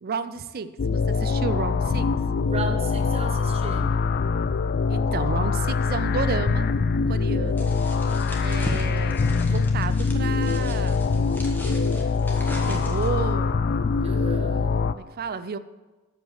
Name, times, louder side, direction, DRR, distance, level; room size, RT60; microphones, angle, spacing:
voice 1, 0.0-2.1 4.9-6.7 7.1-7.7 8.4-11.0 11.7-12.1 12.7-13.6 14.1-15.6, right 5 dB, 45° right, 14 dB, 0.5 m, -32 dB
sound 1, 0.8-14.9, left 4 dB, 45° left, 0.4 m, -23 dB
voice 2, 2.4-4.0 14.0-14.8, right 3 dB, 25° right, 3 dB, 1.1 m, -35 dB
sound 2, 7.6-13.3, equal, 10° left, 1.5 m, -38 dB
13.5 x 5.5 x 6.5 m, 1.2 s
head